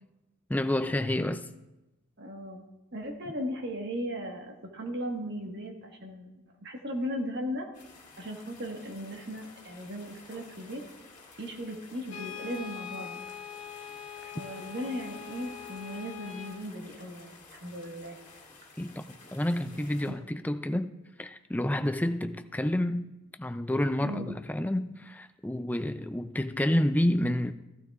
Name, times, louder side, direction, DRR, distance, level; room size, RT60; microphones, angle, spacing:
voice 1, 0.5-1.5 18.8-20.9 21.2-23.1 23.4-27.5, left 1 dB, 10° left, 0.3 m, -29 dB
voice 2, 2.2-2.6 2.9-7.7 8.2-10.8 11.4-13.2 14.2-18.2 20.0-20.1 24.0-24.3, equal, 55° right, 1.5 m, -37 dB
sound 1, 7.7-20.1, left 3 dB, 35° left, 2.6 m, -52 dB
Brass instrument, 12.1-16.6, left 8 dB, 70° left, 1.7 m, -43 dB
15.0 x 12.0 x 2.4 m
head